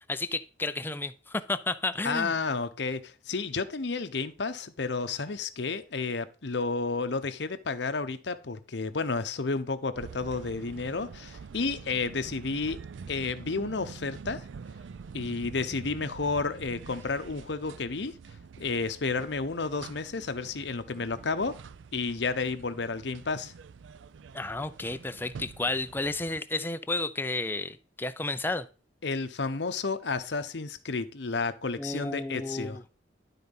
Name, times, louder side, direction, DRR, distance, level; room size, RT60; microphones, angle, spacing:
voice 1, 0.1-2.3 24.3-28.7 31.8-32.8, left 2 dB, 10° left, 0.5 m, -32 dB
voice 2, 2.0-12.8 13.1-14.4 15.1-18.1 18.6-21.5 21.9-23.5 29.0-32.8, left 4 dB, 65° left, 0.8 m, -31 dB
sound 1, 9.9-26.4, right 5 dB, 80° right, 0.4 m, -46 dB
11.5 x 3.9 x 5.4 m
head